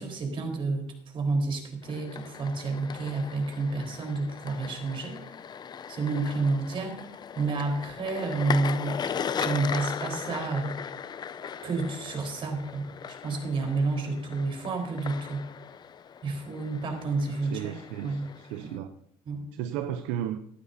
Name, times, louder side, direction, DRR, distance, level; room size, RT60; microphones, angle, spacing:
voice 1, 0.0-5.2 5.9-9.0 9.3-10.8 11.6-12.9 13.2-15.5 16.2-18.3 18.6-18.7 19.3-19.4, right 3 dB, 50° right, 4.2 m, -30 dB
sound 1, 1.8-18.8, left 7 dB, 40° left, 0.6 m, -38 dB
voice 2, 17.5-18.9 19.5-20.4, right 10 dB, 80° right, 0.7 m, -34 dB
18.5 x 13.0 x 2.8 m
supercardioid pair, 85°, 12 cm